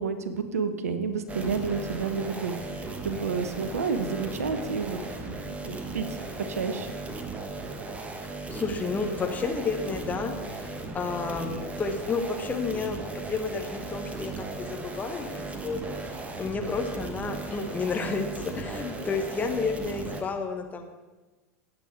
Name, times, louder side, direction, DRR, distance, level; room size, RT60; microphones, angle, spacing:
voice 1, 0.0-6.9, right 5 dB, 70° right, 10 dB, 0.9 m, -31 dB
sound 1, 1.3-20.2, right 3 dB, 15° right, 1.2 m, -37 dB
voice 2, 8.2-20.8, left 4 dB, 20° left, 4 dB, 1.3 m, -31 dB
16.5 x 8.2 x 3.4 m, 1.2 s
figure-of-eight pair, 90°, 8 cm